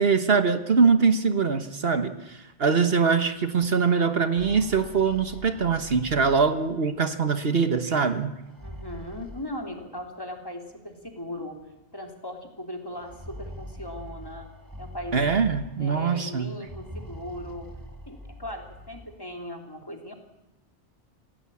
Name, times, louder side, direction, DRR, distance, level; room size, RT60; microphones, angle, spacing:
voice 1, 0.0-8.3 15.1-16.5, right 5 dB, 60° right, 9 dB, 1.4 m, -23 dB
sound 1, 4.2-7.0 8.4-10.1 11.1-11.2 11.5-11.6 12.9-16.0 16.6-19.2, equal, 20° right, 2.2 m, -43 dB
voice 2, 8.6-11.6 11.9-14.5 14.8-15.2 15.8-17.7 18.1-20.1, left 1 dB, 20° left, 3 dB, 3.1 m, -38 dB
27.0 x 16.5 x 8.6 m, 0.99 s
omnidirectional pair, 1.1 m